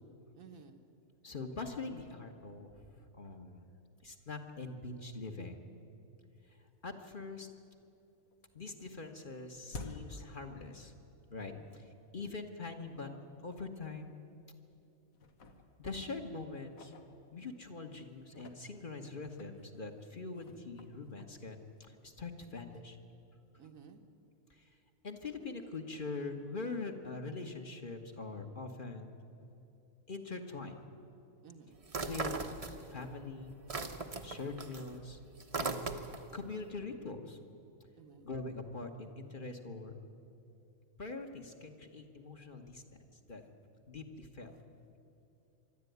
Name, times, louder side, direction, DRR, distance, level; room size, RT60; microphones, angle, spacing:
voice 1, 0.4-0.9 11.5-11.8 12.1-12.3 23.6-24.0 31.4-31.8 38.0-38.3, right 6 dB, 75° right, 5 dB, 1.7 m, -55 dB
voice 2, 1.2-3.7 4.0-5.6 6.5-6.6 6.8-7.5 8.5-10.9 11.3-13.1 13.4-14.2 15.8-16.9 17.3-23.0 24.5-24.7 25.0-29.1 30.1-30.8 32.0-32.4 32.7-33.6 34.2-35.2 35.5-35.8 36.3-37.4 38.2-39.9 41.0-42.8 43.3-43.4 43.9-44.5, left 3 dB, 40° left, 4 dB, 1.4 m, -43 dB
sound 1, 6.9-7.0 7.4-8.0 8.3-11.2 11.5-11.6 12.3-12.4 12.9-13.0 13.4-13.5 14.3-14.8 15.1-17.7 18.2-22.1, left 2 dB, 80° left, 1.8 m, -53 dB
sound 2, 31.9-33.1 33.4-36.4, right 3 dB, 30° right, 0.9 m, -38 dB
25.0 x 12.0 x 9.4 m, 2.8 s
omnidirectional pair, 1.4 m